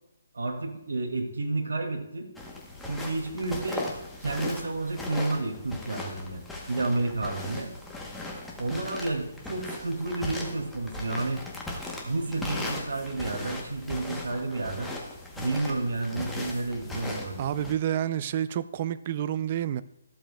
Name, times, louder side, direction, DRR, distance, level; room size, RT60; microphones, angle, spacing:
voice 1, 0.3-2.3 2.9-3.9 4.2-6.4 6.7-7.7 8.6-11.4 12.1-14.9 15.4-17.4, right 2 dB, 80° right, 2.2 m, -31 dB
sound 1, 2.4-17.7, left 2 dB, 5° left, 1.0 m, -38 dB
voice 2, 17.4-19.8, right 10 dB, 30° right, 0.4 m, -29 dB
14.0 x 7.7 x 2.3 m
hypercardioid pair, 165°, 0 cm